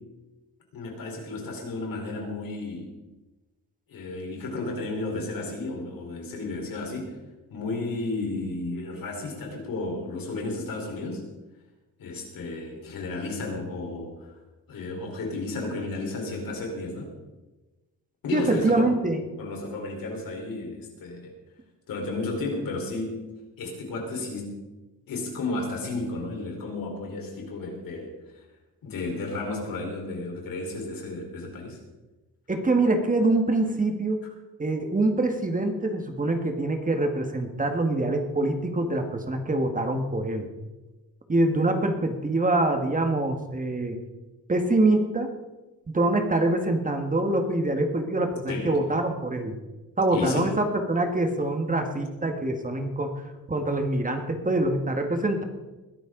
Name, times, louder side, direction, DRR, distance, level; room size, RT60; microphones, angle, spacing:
voice 1, 0.7-2.9 3.9-7.2 7.5-11.2 12.0-14.3 14.7-17.1 18.2-19.0 19.4-21.3 21.9-23.2 23.6-24.6 25.1-28.4 28.8-31.8 48.5-48.8 50.1-50.5, left 2 dB, 80° left, 1 dB, 4.3 m, -33 dB
voice 2, 18.3-19.2 32.5-34.2 34.6-40.5 41.3-44.0 44.5-45.3 45.9-49.6 50.0-53.1 53.5-55.4, right 2 dB, 25° right, 5 dB, 1.7 m, -25 dB
21.0 x 12.0 x 3.9 m, 1.1 s
cardioid pair, 100°, 34 cm